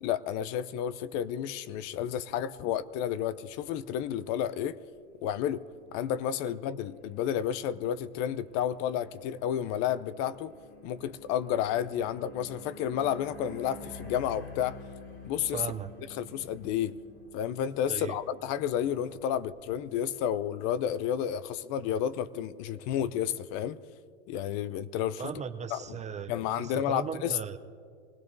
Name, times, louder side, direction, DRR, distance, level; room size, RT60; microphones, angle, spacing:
voice 1, 0.0-4.8 5.2-5.6 5.9-10.5 10.8-14.8 15.2-15.6 16.2-16.9 17.3-23.8 24.3-25.2 25.7-25.8 26.3-27.4, left 10 dB, 50° left, 16 dB, 0.6 m, -31 dB
sound 1, 2.7-21.5, left 2 dB, 90° left, 4.6 m, -51 dB
voice 2, 15.5-15.9 17.9-18.2 25.2-27.6, right 7 dB, 20° right, 9 dB, 0.5 m, -37 dB
24.5 x 17.0 x 2.7 m, 2.3 s
hypercardioid pair, 110°, 37 cm